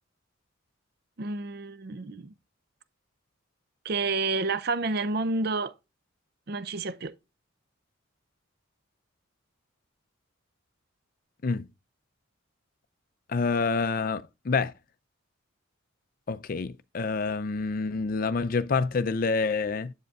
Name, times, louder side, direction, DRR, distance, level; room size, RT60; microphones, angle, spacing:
voice 1, 1.2-2.3 3.8-5.7 6.5-7.1, right 3 dB, 50° right, 0.5 m, -29 dB
voice 2, 13.3-14.7 16.3-19.9, left 4 dB, 45° left, 0.4 m, -27 dB
8.0 x 7.7 x 2.4 m
head